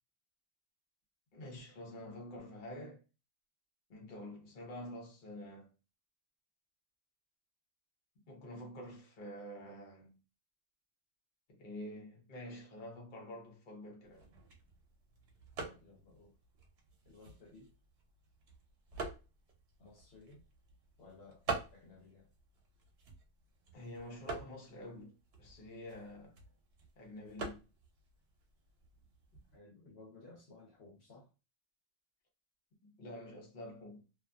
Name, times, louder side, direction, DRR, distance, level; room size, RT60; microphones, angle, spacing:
voice 1, 1.3-3.0 3.9-5.7 8.3-10.2 11.5-14.4 23.7-25.1 25.4-26.4 27.0-27.7 32.8-34.1, left 1 dB, 50° left, 1.0 m, -48 dB
sound 1, 14.0-29.6, right 4 dB, 75° right, 1.0 m, -47 dB
voice 2, 15.6-16.4 17.0-17.7 19.8-20.4 21.0-21.4 21.7-22.3 29.5-31.3, left 3 dB, 75° left, 1.2 m, -57 dB
2.6 x 2.5 x 2.3 m
omnidirectional pair, 1.1 m